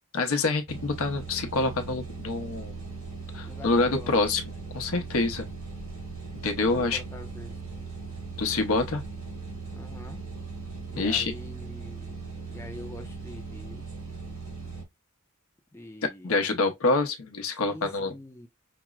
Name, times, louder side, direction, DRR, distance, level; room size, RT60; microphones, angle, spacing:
voice 1, 0.1-2.8 3.3-4.4 4.7-5.5 6.4-7.0 8.4-9.0 10.9-11.3 16.2-18.1, left 3 dB, 85° left, 0.7 m, -26 dB
sound 1, 0.7-14.8, right 4 dB, 85° right, 2.7 m, -39 dB
voice 2, 3.4-4.1 6.6-7.6 9.7-10.2 10.9-12.2 12.5-13.9 15.7-16.4 17.5-18.5, left 1 dB, 10° left, 0.5 m, -45 dB
5.7 x 2.0 x 2.3 m
head